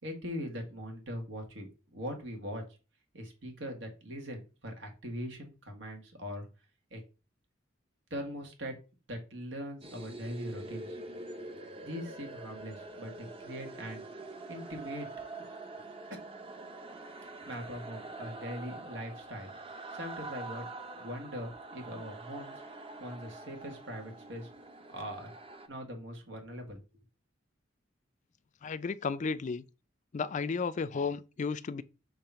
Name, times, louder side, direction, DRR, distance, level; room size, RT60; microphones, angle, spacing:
voice 1, 0.0-2.6 3.1-6.5 6.9-7.0 8.1-8.7 9.1-11.0 11.8-14.0 14.5-15.1 17.5-19.5 19.9-20.7 20.9-22.6 23.0-24.5 24.9-25.3 25.7-26.8, equal, 85° right, 2.0 m, -41 dB
sound 1, 9.8-25.7, right 2 dB, 30° right, 0.7 m, -45 dB
voice 2, 28.6-29.6 30.1-31.8, left 5 dB, 40° left, 0.4 m, -33 dB
6.8 x 3.2 x 5.7 m
head